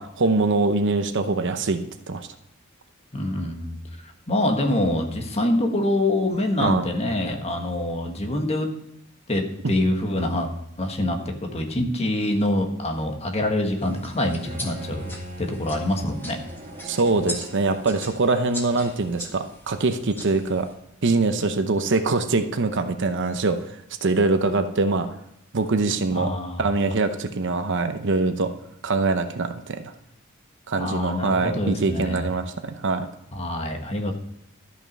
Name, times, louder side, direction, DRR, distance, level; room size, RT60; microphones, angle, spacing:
voice 1, 0.0-1.8 2.1-2.3 6.6-6.9 9.6-9.7 16.8-20.7 21.0-23.6 24.0-25.1 25.5-26.3 26.6-28.5 28.8-29.9 30.7-33.1, right 3 dB, 60° right, 8 dB, 0.8 m, -23 dB
voice 2, 3.1-8.7 9.3-10.5 10.8-16.4 26.1-26.7 30.8-32.3 33.3-34.2, left 1 dB, 30° left, 3 dB, 1.4 m, -25 dB
sound 1, 13.8-20.7, left 1 dB, 10° left, 1.7 m, -40 dB
Bowed string instrument, 14.4-19.2, right 1 dB, 35° right, 2.1 m, -41 dB
13.0 x 5.9 x 5.3 m, 0.81 s
head